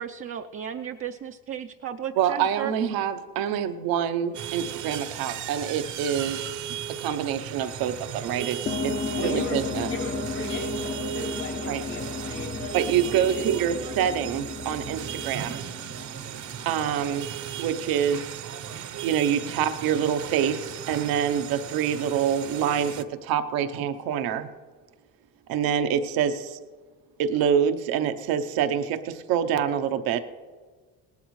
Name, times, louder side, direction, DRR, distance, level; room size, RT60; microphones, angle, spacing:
voice 1, 0.0-2.7, right 9 dB, 40° right, 6 dB, 0.5 m, -34 dB
voice 2, 2.2-9.9 11.7-11.8 12.7-15.6 16.6-17.3 17.6-18.2 19.0-24.5 25.5-26.6 27.2-30.2, right 8 dB, 80° right, 10 dB, 0.9 m, -26 dB
sound 1, 4.3-23.0, right 10 dB, 55° right, 0.9 m, -36 dB
sound 2, 8.7-16.8, left 4 dB, 30° left, 0.6 m, -34 dB
voice 3, 9.2-9.6 9.9-12.7 13.1-13.4 16.2-16.3, left 3 dB, 75° left, -2 dB, 3.4 m, -36 dB
18.5 x 12.5 x 3.2 m, 1.5 s
cardioid pair, 105°, 35 cm